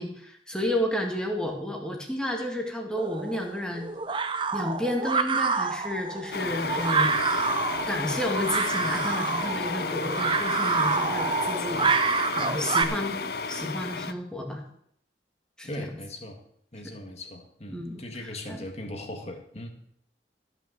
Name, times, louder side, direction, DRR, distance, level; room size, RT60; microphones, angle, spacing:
voice 1, 0.0-3.9 4.5-7.1 7.9-13.2 13.5-14.6 15.6-15.9 17.7-18.6, left 1 dB, 5° left, 1 dB, 2.1 m, -31 dB
sound 1, 3.0-12.8, right 5 dB, 30° right, 0.7 m, -28 dB
sound 2, 6.3-14.1, left 4 dB, 60° left, 0.6 m, -32 dB
voice 2, 15.6-16.4 16.7-19.7, left 1 dB, 35° left, 4 dB, 1.9 m, -39 dB
14.5 x 6.1 x 7.9 m, 0.68 s
head